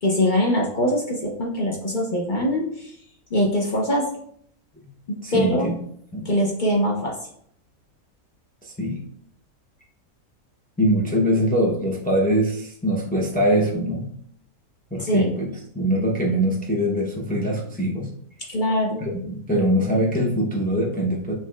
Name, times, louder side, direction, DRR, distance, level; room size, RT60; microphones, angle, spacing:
voice 1, 0.0-2.9 3.3-4.0 5.1-5.7 6.2-7.1 15.0-15.3 18.5-19.0, equal, 45° left, -2 dB, 0.7 m, -22 dB
voice 2, 5.2-5.8 6.1-6.3 8.6-9.0 10.8-14.1 14.9-18.1 19.0-21.3, equal, 15° left, -3 dB, 0.3 m, -23 dB
5.7 x 3.0 x 2.3 m, 0.66 s
omnidirectional pair, 1.6 m